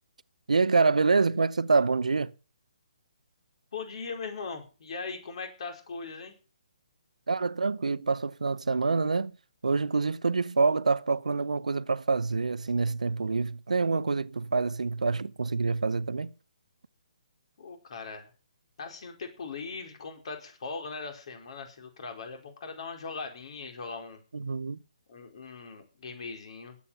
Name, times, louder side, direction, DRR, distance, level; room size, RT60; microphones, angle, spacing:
voice 1, 0.5-2.3 7.3-9.3 9.6-16.3 24.3-24.8, right 4 dB, 85° right, 0.7 m, -26 dB
voice 2, 3.7-6.3 17.6-18.3 18.8-24.2 25.1-26.8, left 4 dB, 55° left, 4.7 m, -40 dB
19.0 x 8.7 x 5.8 m
hypercardioid pair, 145°, 4 cm